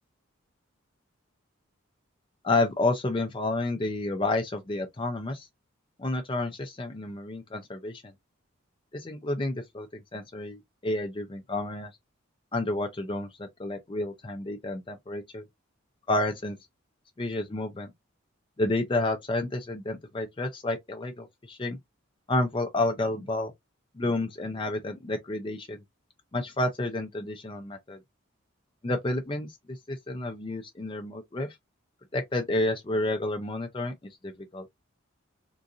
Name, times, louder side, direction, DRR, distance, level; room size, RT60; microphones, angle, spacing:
voice 1, 2.4-5.5 6.0-8.1 8.9-11.9 12.5-15.4 16.1-16.6 17.2-17.9 18.6-21.8 22.3-23.5 24.0-25.8 26.3-28.0 28.8-31.6 32.1-33.9 34.2-34.7, left 2 dB, 25° left, 0.4 m, -30 dB
3.8 x 2.5 x 2.4 m
head